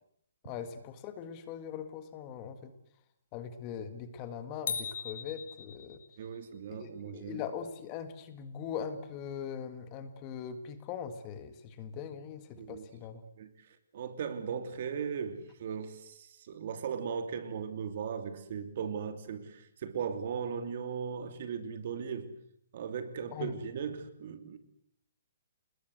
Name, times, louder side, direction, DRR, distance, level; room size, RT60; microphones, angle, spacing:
voice 1, 0.4-2.7 3.3-6.0 6.7-13.2 23.3-23.5, left 7 dB, 20° left, 10 dB, 1.8 m, -41 dB
sound 1, 4.7-6.3, left 6 dB, 60° left, 4.0 m, -38 dB
voice 2, 6.2-7.4 12.6-12.9 13.4-13.5 13.9-22.3 22.7-24.6, right 6 dB, 40° right, 9 dB, 2.9 m, -37 dB
29.5 x 20.5 x 8.0 m, 0.68 s
hypercardioid pair, 170°, 0 cm